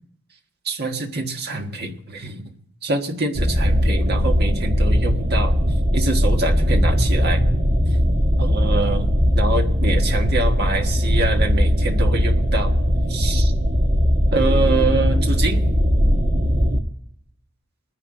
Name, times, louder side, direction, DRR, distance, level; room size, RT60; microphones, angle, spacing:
voice 1, 0.6-2.5 2.8-5.5 5.9-7.4 8.4-9.1 9.3-12.7 13.1-13.5 14.3-15.6, right 2 dB, 50° right, 3 dB, 1.5 m, -25 dB
sound 1, 3.3-16.8, equal, 35° right, 1.1 m, -19 dB
21.5 x 10.0 x 3.8 m, 0.70 s
head